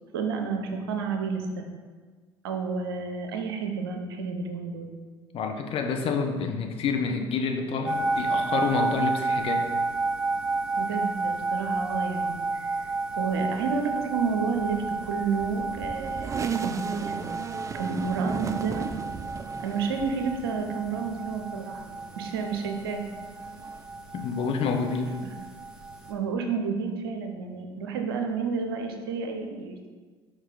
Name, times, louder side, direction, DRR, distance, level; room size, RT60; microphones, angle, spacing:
voice 1, 0.1-1.6 2.4-4.9 10.7-12.9 13.2-14.8 15.0-17.4 17.7-18.9 19.6-21.8 22.2-23.0 26.1-29.9, right 5 dB, 75° right, 4 dB, 0.7 m, -30 dB
voice 2, 5.3-9.6 24.1-25.1, left 5 dB, 50° left, 4 dB, 0.9 m, -28 dB
sound 1, 7.8-26.1, right 3 dB, 5° right, 1.3 m, -31 dB
sound 2, 14.6-21.4 21.9-23.8, right 6 dB, 25° right, 0.4 m, -36 dB
6.3 x 4.7 x 3.8 m, 1.5 s
figure-of-eight pair, 60°, 13 cm